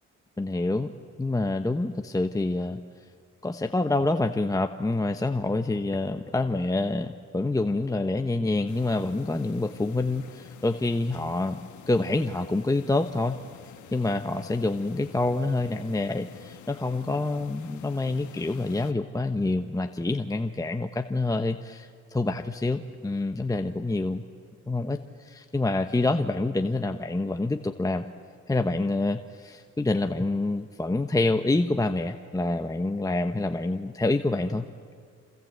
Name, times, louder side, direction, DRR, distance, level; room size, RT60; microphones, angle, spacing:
voice 1, 0.4-0.9 1.2-2.8 3.4-11.6 11.9-13.4 13.9-24.2 24.7-28.1 28.5-34.6, left 2 dB, 10° left, 6 dB, 1.0 m, -27 dB
sound 1, 8.7-18.9, left 10 dB, 75° left, 1.4 m, -47 dB
27.5 x 27.0 x 8.1 m, 2.1 s
cardioid pair, 90°, 30 cm